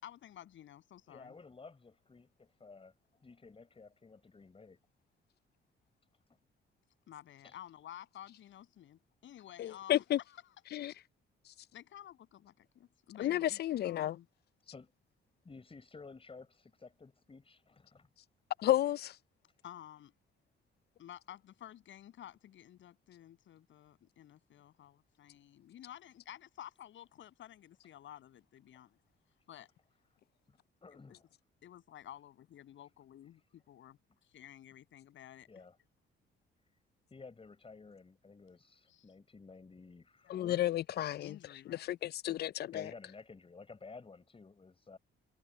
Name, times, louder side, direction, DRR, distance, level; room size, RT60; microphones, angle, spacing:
voice 1, 0.0-1.4 7.1-10.5 11.7-14.3 19.6-20.1 21.0-29.0 29.5-29.7 30.9-31.2 31.6-35.5 38.9-39.0 40.2-40.7 41.2-41.9, left 11 dB, 75° left, 7.6 m, -53 dB
voice 2, 1.1-4.8 7.4-7.6 14.6-14.9 15.4-18.1 30.5-31.2 35.5-35.8 37.1-40.6 42.7-45.0, left 4 dB, 30° left, 5.2 m, -54 dB
voice 3, 9.6-10.2 10.7-10.9 13.2-14.2 18.6-19.1 40.3-41.3 41.7-42.9, left 13 dB, 55° left, 0.4 m, -32 dB
cardioid pair, 90°, 20 cm